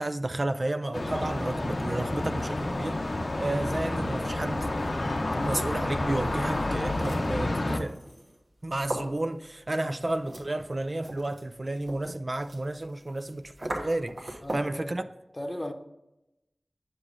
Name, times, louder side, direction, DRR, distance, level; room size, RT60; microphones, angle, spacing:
voice 1, 0.0-3.0 3.4-4.7 5.4-8.0 8.6-15.0, right 2 dB, 45° right, 0.3 m, -32 dB
sound 1, 0.9-7.8, left 2 dB, 60° left, 0.6 m, -29 dB
sound 2, 4.8-14.8, right 1 dB, 80° right, 1.2 m, -42 dB
voice 2, 14.4-14.9 15.3-15.7, left 1 dB, 30° left, 0.8 m, -36 dB
7.8 x 6.0 x 2.5 m
wide cardioid pair, 50°, 0 cm